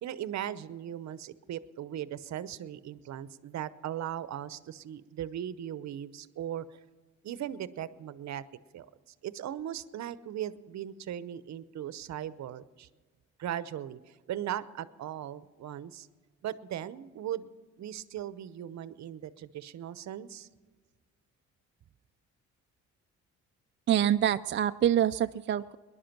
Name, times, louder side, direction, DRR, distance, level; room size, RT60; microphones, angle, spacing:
voice 1, 0.0-6.6 7.2-8.4 8.7-8.9 9.2-12.9 13.4-16.1 16.4-17.5 17.8-20.5, right 11 dB, 65° right, 15 dB, 0.8 m, -38 dB
voice 2, 23.9-25.8, right 10 dB, 40° right, 9 dB, 0.4 m, -26 dB
20.5 x 11.0 x 5.9 m, 1.4 s
cardioid pair, 90°, 30 cm